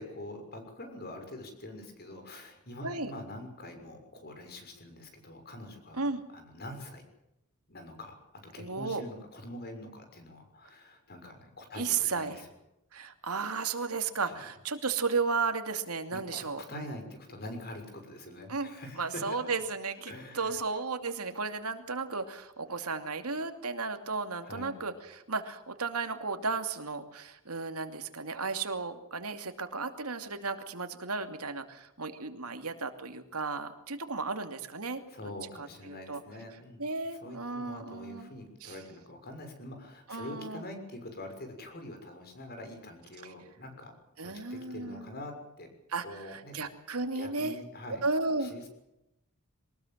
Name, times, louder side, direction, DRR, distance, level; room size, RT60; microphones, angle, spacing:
voice 1, 0.0-7.0 7.7-12.5 14.3-14.4 16.1-19.5 20.1-20.6 24.4-24.8 35.1-36.8 37.2-43.9 44.2-45.7 46.0-46.6 47.1-48.0 48.4-48.7, left 1 dB, 45° left, 6 dB, 6.5 m, -45 dB
voice 2, 8.6-9.0 11.8-12.4 12.9-16.9 18.5-18.7 19.0-35.0 35.6-36.2 36.8-38.3 38.6-38.7 40.1-40.6 44.2-45.2 45.9-47.5 47.9-48.5, right 4 dB, 90° right, 7 dB, 2.7 m, -34 dB
23.5 x 20.0 x 7.6 m, 0.87 s
head